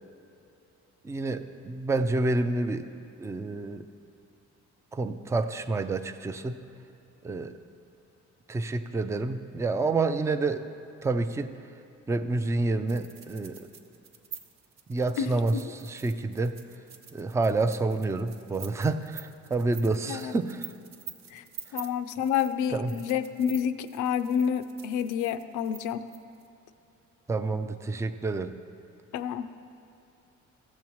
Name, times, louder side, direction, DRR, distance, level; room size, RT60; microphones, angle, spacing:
voice 1, 1.0-2.9 3.2-3.8 4.9-6.6 7.2-7.6 8.5-10.7 11.0-11.5 12.1-13.7 14.9-16.6 17.1-20.7 22.7-22.9 27.3-28.6, right 3 dB, 10° right, 9 dB, 0.3 m, -28 dB
sound 1, 12.9-26.5, right 7 dB, 60° right, 0.8 m, -47 dB
voice 2, 15.2-15.6 20.1-20.3 21.3-21.4 21.7-26.1 29.1-29.6, left 8 dB, 85° left, 11 dB, 0.5 m, -29 dB
15.0 x 7.1 x 3.0 m, 2.7 s
cardioid pair, 90°, 30 cm